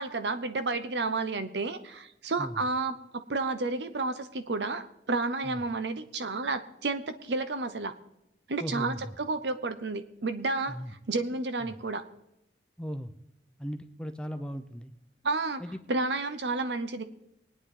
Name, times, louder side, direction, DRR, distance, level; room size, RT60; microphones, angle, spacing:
voice 1, 0.0-7.9 8.5-10.8 11.1-12.0 15.2-15.6 15.9-17.0, right 3 dB, 85° right, 11 dB, 0.9 m, -31 dB
voice 2, 8.6-9.1 10.7-10.9 11.6-11.8 12.8-13.1 13.6-14.9 15.6-15.8, equal, 5° left, 7 dB, 0.6 m, -37 dB
23.5 x 9.5 x 3.8 m, 0.85 s
head